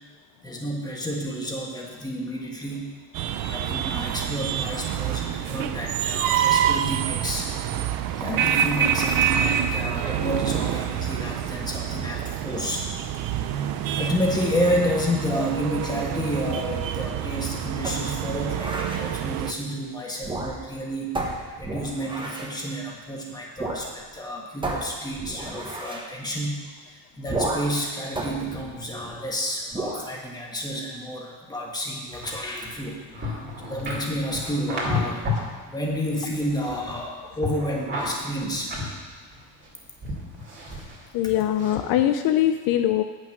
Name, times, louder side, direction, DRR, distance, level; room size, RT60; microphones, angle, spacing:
voice 1, 0.4-2.9 3.5-7.5 8.2-12.8 13.5-26.6 26.9-33.4 33.6-35.3 35.7-38.7, equal, 10° left, -1 dB, 1.6 m, -30 dB
sound 1, 3.1-19.5, right 9 dB, 60° right, 0.6 m, -27 dB
sound 2, 17.8-19.0 20.1-20.8 21.1-22.6 23.6-23.9 24.1-24.2 24.6-26.1 27.3-27.8 28.1-29.3 29.7-30.1, right 2 dB, 10° right, 1.1 m, -32 dB
sound 3, 32.2-35.5 35.9-37.1 37.4-39.7 40.0-41.1 41.5-41.8, left 2 dB, 30° right, 2.4 m, -32 dB
voice 2, 41.1-43.0, left 11 dB, 65° left, 8 dB, 0.6 m, -22 dB
8.3 x 6.4 x 6.0 m, 1.4 s
cardioid pair, 135°, 38 cm